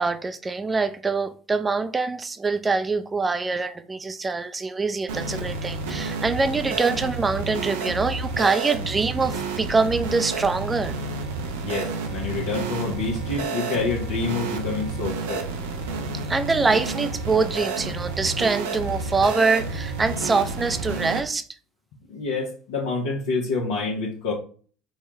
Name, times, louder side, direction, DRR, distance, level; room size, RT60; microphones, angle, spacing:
voice 1, 0.0-11.0 16.3-21.5, right 4 dB, 20° right, 0.4 m, -24 dB
sound 1, 5.1-21.2, right 4 dB, 75° right, 0.5 m, -30 dB
voice 2, 11.6-15.4 22.1-24.3, left 4 dB, 70° left, 0.8 m, -27 dB
4.6 x 2.3 x 3.0 m
hypercardioid pair, 65°, 0 cm